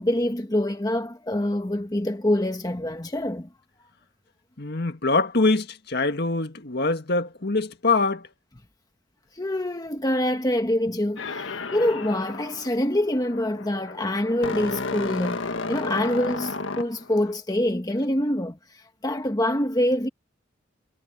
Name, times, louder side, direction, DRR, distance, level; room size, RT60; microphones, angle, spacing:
voice 1, 0.0-3.5 9.3-20.1, left 1 dB, 20° left, 1.3 m, -25 dB
voice 2, 4.6-8.3, left 3 dB, 55° left, 1.9 m, -24 dB
sound 1, 11.2-17.3, left 3 dB, 80° left, 1.6 m, -33 dB
head